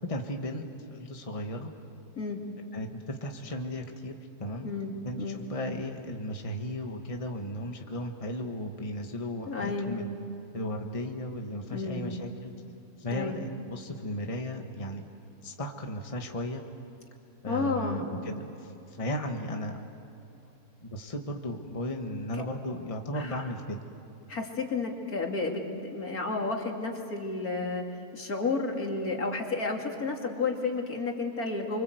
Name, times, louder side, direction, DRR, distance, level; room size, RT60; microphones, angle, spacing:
voice 1, 0.0-1.7 2.7-4.1 4.4-4.7 5.0-10.1 10.5-12.5 13.0-15.0 15.4-16.6 17.4-19.8 20.8-23.8, left 1 dB, 20° left, 3 dB, 1.7 m, -35 dB
voice 2, 4.6-5.4 9.5-10.0 11.7-12.1 13.1-13.4 17.5-18.2 23.1-23.4 24.3-27.8 28.1-31.8, left 3 dB, 65° left, 1 dB, 3.2 m, -31 dB
29.5 x 24.5 x 8.0 m, 2.9 s
omnidirectional pair, 1.7 m